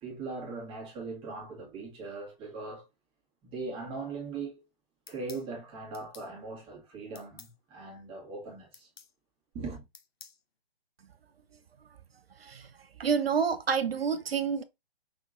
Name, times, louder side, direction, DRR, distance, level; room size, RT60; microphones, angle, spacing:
voice 1, 0.0-2.9 3.4-4.6 5.1-8.9 9.5-9.8, right 3 dB, 15° right, 1.8 m, -40 dB
sound 1, 5.1-5.5 5.9-6.3 7.2-7.5 8.7-9.1 9.9-10.4, left 6 dB, 80° left, 0.9 m, -51 dB
voice 2, 12.4-14.6, right 6 dB, 75° right, 0.6 m, -29 dB
5.9 x 3.6 x 2.5 m
figure-of-eight pair, 135°, 30 cm